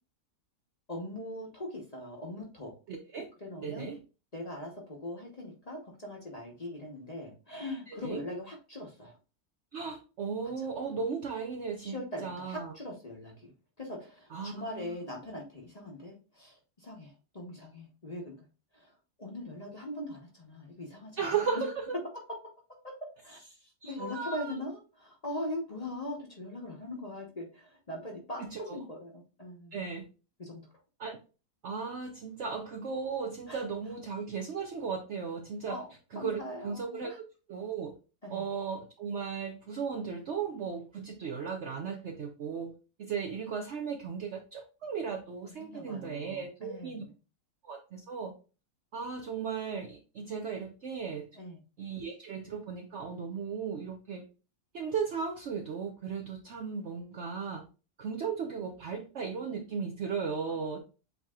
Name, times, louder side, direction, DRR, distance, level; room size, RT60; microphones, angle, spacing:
voice 1, 0.9-2.7 3.4-3.9 4.3-9.2 10.6-10.7 11.8-13.5 13.8-18.4 18.7-21.4 22.8-22.9 23.2-29.8 30.4-30.6 33.5-33.6 35.7-35.9 36.1-37.2 38.2-38.5 45.5-47.1 51.3-51.6 60.5-60.6, left 1 dB, 30° left, -1 dB, 0.9 m, -41 dB
voice 2, 2.9-3.3 3.6-4.0 7.9-8.2 9.7-12.7 14.3-15.0 21.2-21.8 23.8-24.5 28.5-28.8 29.7-30.1 31.0-31.2 31.6-35.8 36.1-37.1 37.5-37.9 38.3-42.7 43.0-47.0 47.6-48.3 48.9-51.3 51.8-54.3 54.7-57.6 58.0-60.8, right 6 dB, 60° right, 3 dB, 0.7 m, -36 dB
7.8 x 2.9 x 2.3 m, 0.33 s
omnidirectional pair, 1.7 m